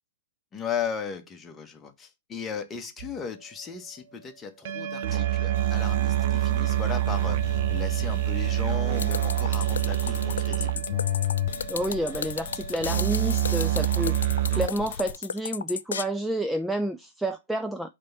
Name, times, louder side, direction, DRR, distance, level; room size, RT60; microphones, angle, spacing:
voice 1, 0.5-10.8, left 6 dB, 20° left, 1.2 m, -36 dB
sound 1, 3.0-3.1 4.7-14.7, right 15 dB, 55° right, 0.6 m, -27 dB
sound 2, 5.5-10.6 10.9-15.1, left 10 dB, 50° left, 1.3 m, -36 dB
sound 3, 9.0-16.0, left 7 dB, 75° left, 0.4 m, -34 dB
voice 2, 11.7-17.9, right 1 dB, 5° right, 0.4 m, -30 dB
5.2 x 3.5 x 5.5 m
hypercardioid pair, 115°, 0 cm